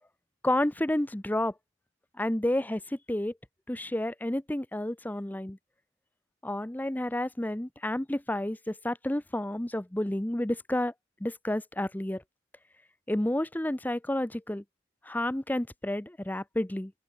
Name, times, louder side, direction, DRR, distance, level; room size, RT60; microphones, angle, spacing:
voice 1, 0.4-1.5 2.2-2.8 3.1-3.3 3.7-5.6 6.4-10.9 11.2-12.2 13.1-14.6 15.1-16.9, left 1 dB, 10° left, 0.6 m, -30 dB
open air
head